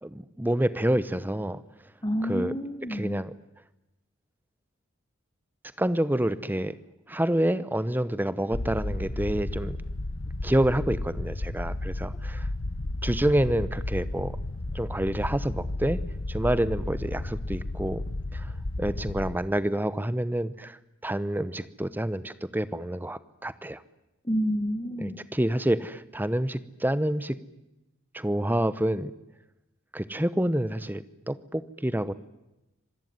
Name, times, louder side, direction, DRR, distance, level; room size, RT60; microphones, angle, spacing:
voice 1, 0.0-1.6 2.2-2.5 2.9-3.3 5.8-6.7 7.1-9.8 10.4-12.5 13.0-14.4 14.7-16.0 16.3-18.0 18.3-18.5 18.8-20.8 21.0-23.8 25.0-27.4 28.1-29.1 29.9-32.1, right 1 dB, 10° right, 15 dB, 0.9 m, -28 dB
voice 2, 2.0-3.2 24.2-25.2, equal, 20° left, 7 dB, 1.5 m, -29 dB
sound 1, 8.5-19.4, left 2 dB, 75° left, 1.2 m, -33 dB
26.0 x 20.0 x 9.5 m, 0.96 s
head